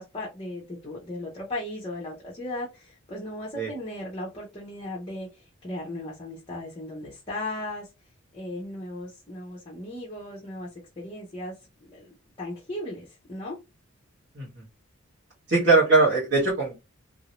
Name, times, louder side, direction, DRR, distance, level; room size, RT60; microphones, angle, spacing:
voice 1, 0.0-7.9 8.3-10.7 11.0-11.5 11.8-13.6, left 1 dB, 25° left, -4 dB, 0.8 m, -36 dB
voice 2, 15.5-16.8, right 3 dB, 50° right, -8 dB, 1.4 m, -20 dB
2.9 x 2.7 x 3.0 m, 0.26 s
head